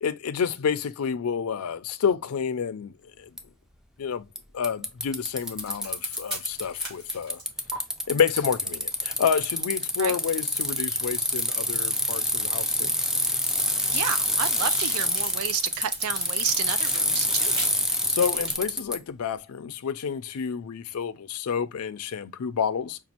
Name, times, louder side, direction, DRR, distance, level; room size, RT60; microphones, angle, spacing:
voice 1, 0.0-2.9 3.2-3.3 4.0-4.2 4.5-7.4 8.1-13.0 18.1-23.0, left 7 dB, 75° left, 0.4 m, -29 dB
Bicycle, 3.4-3.5 4.4-4.5 4.6-6.8 7.1-19.0, equal, ahead, 0.3 m, -26 dB
sound 1, 5.4-7.8 9.7-12.3 12.6-18.5, right 3 dB, 45° right, 1.9 m, -39 dB
voice 2, 13.9-17.6, right 8 dB, 85° right, 0.4 m, -31 dB
5.2 x 2.3 x 2.8 m
head